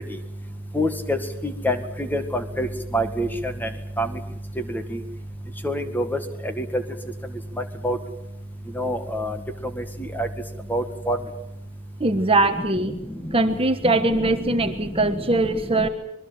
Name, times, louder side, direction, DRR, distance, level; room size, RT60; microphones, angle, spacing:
voice 1, 0.8-1.2 1.4-1.8 2.1-2.2 2.6-2.7 2.9-3.3 4.0-4.1 5.6-6.0 7.8-8.0 8.8-9.3 10.2-10.3 10.7-11.2, equal, 10° left, 7 dB, 1.9 m, -24 dB
voice 2, 12.0-13.0 13.3-15.9, right 2 dB, 25° right, 7 dB, 1.4 m, -21 dB
25.5 x 21.5 x 7.7 m, 0.82 s
head